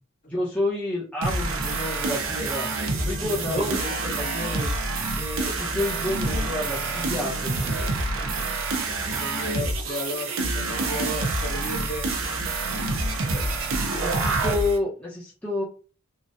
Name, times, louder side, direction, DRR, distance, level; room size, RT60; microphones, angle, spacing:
voice 1, 0.3-2.7 3.0-4.8 5.2-7.9 13.3-13.4 14.0-15.6, left 2 dB, 5° left, -7 dB, 0.9 m, -30 dB
sound 1, 1.2-14.8, right 3 dB, 85° right, 0.7 m, -27 dB
Sink (filling or washing) / Bathtub (filling or washing), 3.2-10.5, right 2 dB, 30° right, 0.5 m, -42 dB
voice 2, 9.0-12.1, left 1 dB, 40° left, -2 dB, 1.2 m, -34 dB
3.7 x 2.3 x 2.6 m, 0.37 s
head